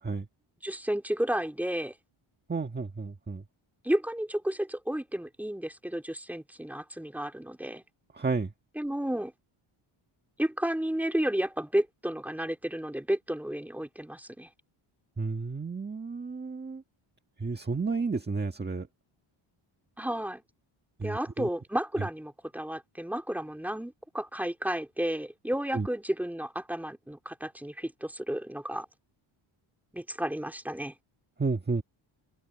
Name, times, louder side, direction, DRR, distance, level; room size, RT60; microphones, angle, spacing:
voice 1, 0.6-1.9 3.8-7.8 8.7-9.3 10.4-14.5 20.0-20.4 21.0-28.8 29.9-30.9, right 1 dB, 5° right, 3.2 m, -32 dB
voice 2, 2.5-3.4 8.1-8.5 15.2-16.8 17.4-18.9 21.0-21.5 25.7-25.9 31.4-31.8, right 4 dB, 20° right, 1.7 m, -31 dB
cardioid pair, 110°, 49 cm